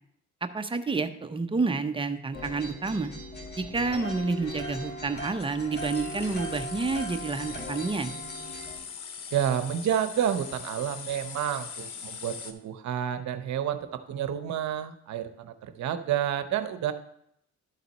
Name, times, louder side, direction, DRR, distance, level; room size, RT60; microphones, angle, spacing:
voice 1, 0.4-3.1 3.6-8.1, right 4 dB, 15° right, 7 dB, 0.6 m, -29 dB
sound 1, 2.3-8.8, equal, 35° left, 2.3 m, -39 dB
sound 2, 5.8-12.5, left 6 dB, 85° left, 0.8 m, -41 dB
voice 2, 9.3-16.9, right 9 dB, 65° right, 10 dB, 0.7 m, -29 dB
12.0 x 4.1 x 4.0 m, 0.74 s
cardioid pair, 90°, 30 cm